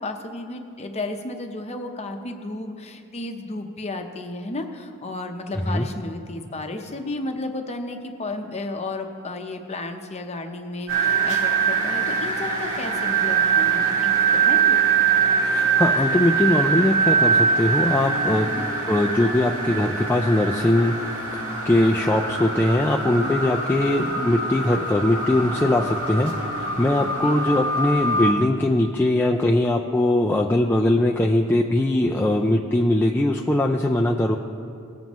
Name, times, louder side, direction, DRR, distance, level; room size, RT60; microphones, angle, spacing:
voice 1, 0.0-14.1 14.4-14.8 18.5-18.7 23.0-23.3 27.2-27.4, left 2 dB, 30° left, 5 dB, 0.7 m, -33 dB
sound 1, 10.9-28.3, right 5 dB, 80° right, 1.9 m, -23 dB
voice 2, 15.4-18.5 18.9-21.0 21.7-34.4, left 1 dB, 10° left, 0 dB, 0.3 m, -21 dB
18.5 x 7.1 x 3.0 m, 2.5 s
head